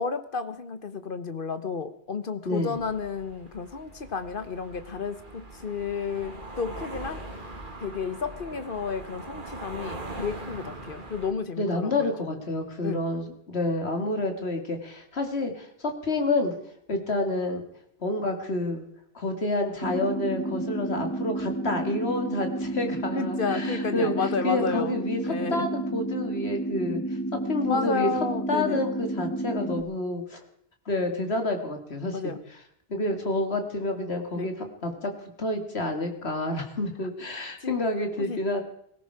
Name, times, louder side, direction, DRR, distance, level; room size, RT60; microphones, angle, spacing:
voice 1, 0.0-7.2 7.8-12.4 12.8-13.0 23.1-25.0 25.3-25.7 27.7-28.8 32.1-32.4 34.3-34.5 37.6-37.8 38.2-38.4, left 5 dB, 55° left, 11 dB, 1.4 m, -32 dB
voice 2, 2.4-2.8 11.6-16.5 16.9-17.7 18.0-18.8 19.1-24.1 24.4-27.2 27.5-28.1 28.5-30.4 30.9-32.3 32.9-35.1 35.4-38.6, left 2 dB, 85° left, 5 dB, 2.7 m, -29 dB
sound 1, 2.7-11.3, right 2 dB, 50° right, 2.3 m, -41 dB
sound 2, 19.8-29.8, right 1 dB, 20° left, 2.0 m, -31 dB
18.5 x 16.0 x 4.8 m, 0.73 s
omnidirectional pair, 1.1 m